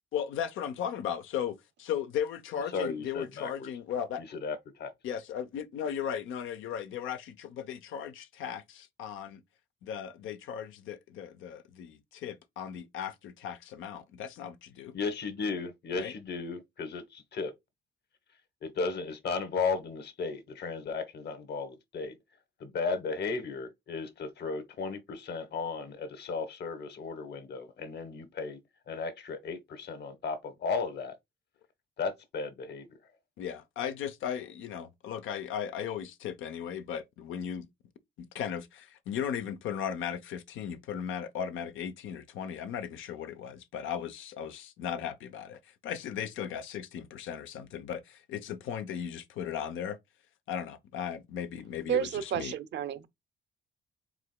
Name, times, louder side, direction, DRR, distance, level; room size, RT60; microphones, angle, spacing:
voice 1, 0.1-4.2 5.0-9.4 9.8-14.9 15.9-16.1 33.4-37.7 38.2-50.0 50.5-52.5, left 8 dB, 80° left, 0.7 m, -36 dB
voice 2, 2.7-3.7 4.2-4.9 14.9-17.5 18.6-22.2 22.6-28.6 28.9-31.2 32.0-32.9, left 4 dB, 60° left, 1.3 m, -35 dB
voice 3, 51.9-53.1, right 9 dB, 60° right, 0.7 m, -31 dB
4.9 x 3.8 x 2.2 m
cardioid pair, 90°, 20 cm